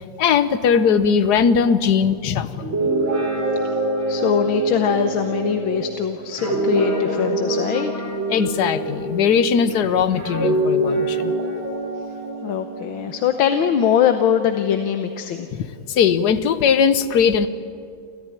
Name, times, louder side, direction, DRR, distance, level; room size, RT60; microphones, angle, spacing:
voice 1, 0.2-2.7 8.3-11.3 15.9-17.5, left 6 dB, 60° left, 12 dB, 1.4 m, -19 dB
Guitar, 2.5-9.7 10.2-13.9, right 1 dB, 80° right, 5.8 m, -25 dB
voice 2, 4.1-7.9 12.4-15.7, left 8 dB, 85° left, 7 dB, 1.8 m, -22 dB
29.5 x 14.0 x 9.9 m, 2.4 s
omnidirectional pair, 2.1 m